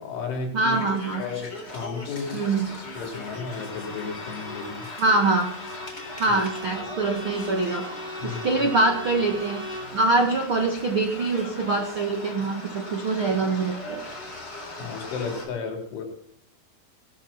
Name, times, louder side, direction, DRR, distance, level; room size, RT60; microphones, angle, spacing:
voice 1, 0.0-0.8 1.2-2.6 3.0-4.9 6.3-6.4 6.8-6.9 8.2-8.7 14.8-16.0, left 4 dB, 75° left, 2 dB, 5.9 m, -33 dB
voice 2, 0.5-1.2 2.3-2.7 4.9-5.5 6.2-7.8 8.2-14.0, right 3 dB, 80° right, 3 dB, 1.1 m, -24 dB
sound 1, 0.7-15.5, left 2 dB, 25° left, 4.0 m, -39 dB
Bowed string instrument, 3.3-10.0, left 1 dB, 10° left, 6.9 m, -39 dB
19.0 x 13.5 x 4.4 m, 0.69 s
omnidirectional pair, 5.6 m